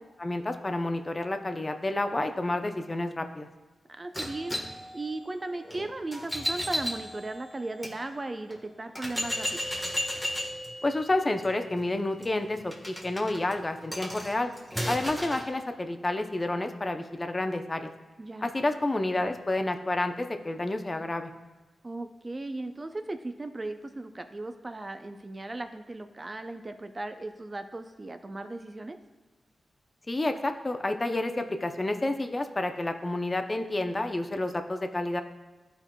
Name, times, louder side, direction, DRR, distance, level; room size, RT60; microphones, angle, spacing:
voice 1, 0.2-3.5 10.8-14.5 14.8-17.9 18.4-21.3 30.1-35.2, left 2 dB, 30° left, 6 dB, 0.5 m, -29 dB
voice 2, 4.0-4.6 4.9-9.6 18.2-18.5 21.8-29.0, right 2 dB, 30° right, 8 dB, 0.4 m, -37 dB
sound 1, 4.1-7.9 8.5-8.6 9.0-15.5, equal, ahead, 1.1 m, -35 dB
12.0 x 4.5 x 2.2 m, 1.2 s
cardioid pair, 70°, 0 cm